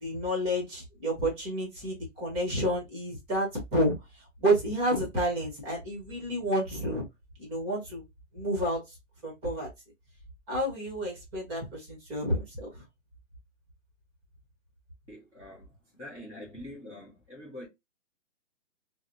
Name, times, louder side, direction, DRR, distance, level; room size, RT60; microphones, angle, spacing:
voice 1, 0.0-3.9 4.4-7.0 7.4-8.0 8.3-8.8 9.2-9.7 10.5-12.8, equal, 15° right, 1.0 m, -30 dB
voice 2, 15.1-17.7, left 1 dB, 5° left, 0.6 m, -45 dB
3.9 x 2.0 x 2.5 m
hypercardioid pair, 150°, 38 cm